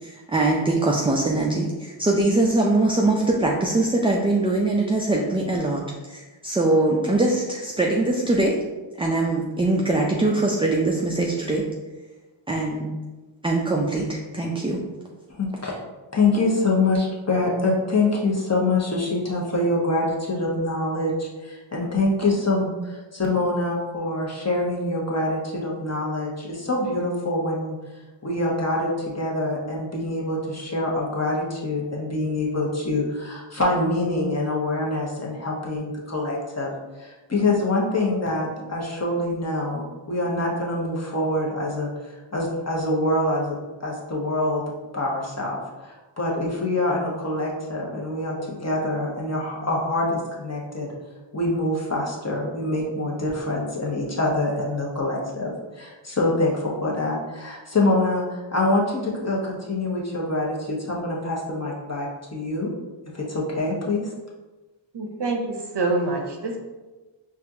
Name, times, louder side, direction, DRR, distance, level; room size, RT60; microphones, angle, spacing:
voice 1, 0.0-8.6 9.0-11.7 12.5-12.9 13.4-14.8, right 2 dB, 15° right, -1 dB, 0.3 m, -22 dB
voice 2, 15.3-15.7 16.1-27.8 28.2-36.7 37.0-41.9 42.3-44.6 44.9-45.6 45.8-48.3 48.6-50.9 51.3-55.5 55.8-62.7 63.1-64.1, left 2 dB, 30° left, -3 dB, 1.0 m, -25 dB
voice 3, 64.9-66.6, right 2 dB, 55° right, 2 dB, 0.7 m, -26 dB
4.3 x 2.4 x 2.7 m, 1.2 s
cardioid pair, 40°, 50 cm